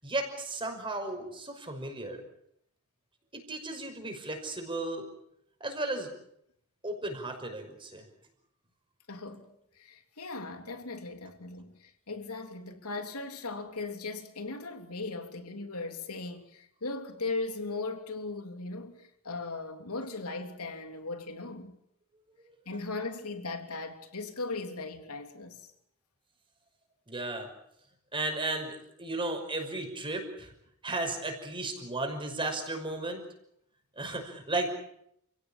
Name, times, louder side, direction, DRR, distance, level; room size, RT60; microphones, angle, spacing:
voice 1, 0.0-2.2 3.3-5.1 5.6-6.1 6.8-8.1 27.1-27.5 28.1-30.5 30.8-33.2 34.0-34.7, right 2 dB, 25° right, 5.7 m, -34 dB
voice 2, 9.1-9.4 9.8-21.8 22.6-25.6, left 3 dB, 90° left, 3.3 m, -38 dB
29.5 x 17.0 x 8.9 m
head